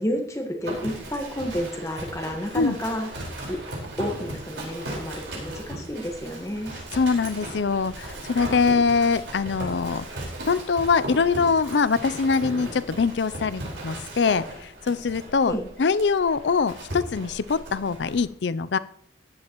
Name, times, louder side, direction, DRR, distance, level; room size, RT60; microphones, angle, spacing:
voice 1, 0.0-3.1 3.5-3.6 4.0-6.7 15.4-15.7, equal, 15° left, 2 dB, 1.4 m, -30 dB
Livestock farm animals working animals, 0.6-18.2, right 1 dB, 80° right, 4.7 m, -37 dB
voice 2, 6.9-10.1 10.5-18.8, left 5 dB, 70° left, 16 dB, 0.5 m, -23 dB
14.5 x 10.5 x 3.0 m, 0.68 s
head